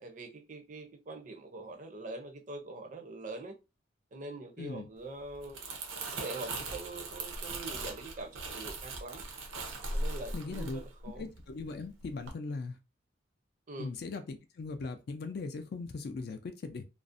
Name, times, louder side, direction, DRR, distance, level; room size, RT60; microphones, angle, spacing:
voice 1, 0.0-3.5 4.1-5.6 6.1-9.2 9.9-11.2 13.7-13.9, right 2 dB, 40° right, 0.5 m, -43 dB
voice 2, 4.6-4.9 10.3-10.8 11.2-12.8 13.8-16.8, left 3 dB, 55° left, 0.3 m, -39 dB
Crumpling crinkling, 5.3-11.7 12.0-12.3, right 2 dB, 85° right, 0.6 m, -39 dB
2.5 x 2.0 x 2.5 m
head